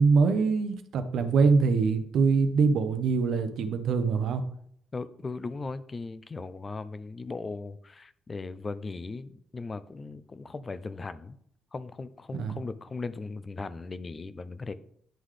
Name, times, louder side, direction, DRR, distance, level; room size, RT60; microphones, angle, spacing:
voice 1, 0.0-4.4 12.3-12.6, right 4 dB, 75° right, 9 dB, 0.7 m, -24 dB
voice 2, 4.9-11.4 11.7-14.7, left 3 dB, 30° left, 14 dB, 0.4 m, -38 dB
10.0 x 3.8 x 3.2 m, 0.67 s
cardioid pair, 90°, 0 cm